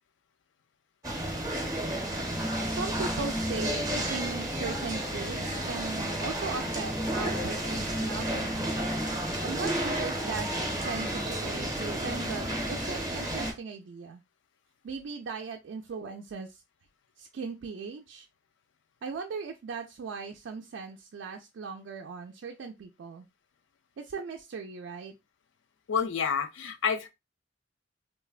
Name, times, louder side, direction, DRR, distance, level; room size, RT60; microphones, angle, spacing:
sound 1, 1.0-13.5, right 1 dB, 20° right, 0.7 m, -31 dB
voice 1, 2.7-8.8 9.4-14.2 14.8-16.6 17.2-18.3 19.0-23.3 24.0-25.1, right 4 dB, 70° right, 0.4 m, -38 dB
voice 2, 25.9-27.1, left 6 dB, 75° left, 0.4 m, -28 dB
3.2 x 2.1 x 2.3 m
head